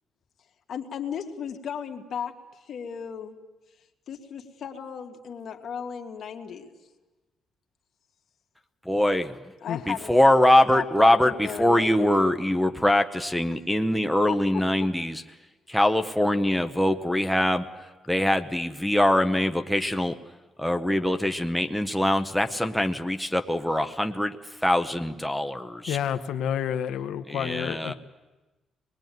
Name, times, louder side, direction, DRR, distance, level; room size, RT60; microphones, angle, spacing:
voice 1, 0.7-2.3 2.6-3.4 4.1-6.7 9.6-10.1 10.7-12.3 14.3-14.4, left 7 dB, 55° left, 4 dB, 2.0 m, -35 dB
voice 2, 8.9-9.4 9.9-15.2 15.7-20.2 20.6-24.4 24.6-26.0 27.3-27.9, left 1 dB, ahead, 5 dB, 0.8 m, -23 dB
voice 3, 25.9-27.9, left 9 dB, 80° left, 8 dB, 0.8 m, -29 dB
25.5 x 20.5 x 9.2 m, 1.1 s
cardioid pair, 145°, 0 cm